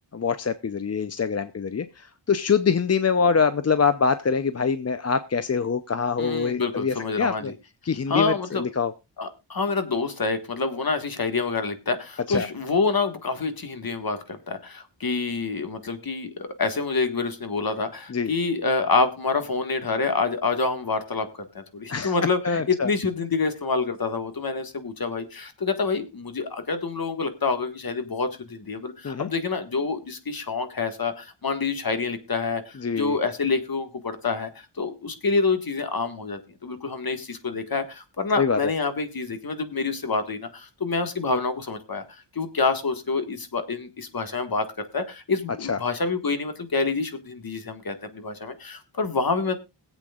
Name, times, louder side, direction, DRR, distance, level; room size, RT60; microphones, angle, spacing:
voice 1, 0.1-7.5 7.8-8.9 12.3-12.5 18.1-18.3 21.9-22.1 22.4-22.9 29.0-29.3 32.8-33.2 38.4-38.6 45.7-45.8, left 5 dB, 35° left, 12 dB, 0.6 m, -24 dB
voice 2, 6.2-7.5 8.1-8.6 9.2-44.6 44.9-49.5, left 4 dB, 50° left, 8 dB, 1.7 m, -27 dB
21.5 x 8.2 x 2.4 m, 0.25 s
wide cardioid pair, 75°, 45 cm